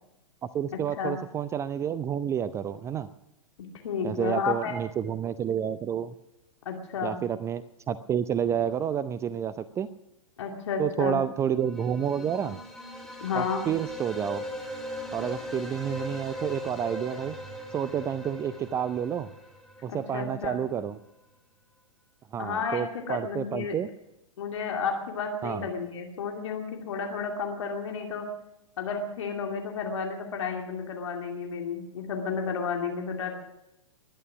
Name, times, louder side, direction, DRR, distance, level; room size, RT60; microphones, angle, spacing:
voice 1, 0.4-3.1 4.0-6.1 7.0-9.9 10.8-12.6 13.3-14.4 15.1-17.4 17.7-19.3 19.8-21.0 22.3-23.9 25.4-25.7, right 8 dB, 15° right, 15 dB, 0.5 m, -29 dB
voice 2, 3.8-4.8 6.6-7.2 10.4-11.2 13.2-13.6 19.9-20.6 22.4-23.8 24.4-28.2 28.8-33.3, left 5 dB, 60° left, 2 dB, 2.5 m, -32 dB
sound 1, 11.6-20.4, left 1 dB, ahead, 2.6 m, -39 dB
21.0 x 11.0 x 6.0 m, 0.91 s
figure-of-eight pair, 105°, 17 cm